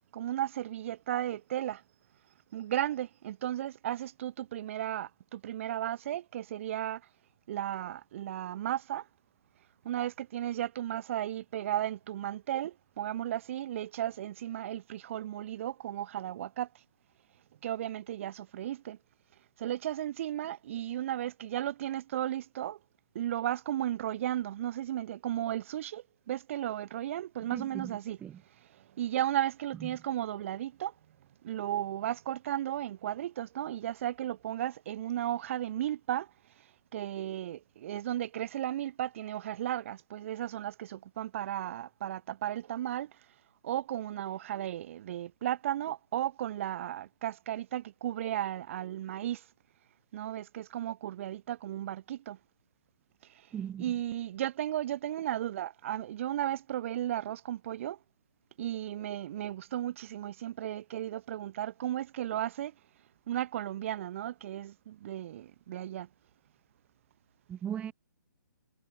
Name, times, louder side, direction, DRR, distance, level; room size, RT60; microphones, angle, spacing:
voice 1, 0.1-1.8 2.5-7.0 7.5-9.0 9.8-16.7 17.6-19.0 19.6-22.8 23.1-28.2 29.0-30.9 31.4-36.3 36.9-43.1 43.6-49.4 50.1-52.4 53.8-58.0 58.6-62.7 63.3-66.1, right 12 dB, 40° right, 0.8 m, -34 dB
voice 2, 27.5-28.4 29.8-29.9 53.5-53.8 67.5-67.9, right 9 dB, 10° right, 0.5 m, -38 dB
figure-of-eight pair, 130°, 11 cm